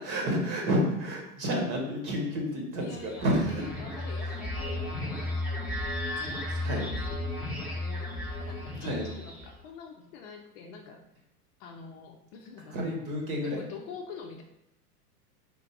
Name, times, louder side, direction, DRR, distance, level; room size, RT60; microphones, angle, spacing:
voice 1, 0.0-3.7 6.6-6.9 8.8-9.1 12.7-13.6, equal, 40° right, -1 dB, 1.5 m, -30 dB
voice 2, 2.8-5.5 6.2-7.4 7.7-11.0 11.6-12.8 13.4-14.4, left 5 dB, 40° left, 2 dB, 0.6 m, -46 dB
sound 1, 2.9-9.6, left 2 dB, 5° right, 1.0 m, -34 dB
3.7 x 2.4 x 4.6 m, 0.83 s
hypercardioid pair, 100°, 46 cm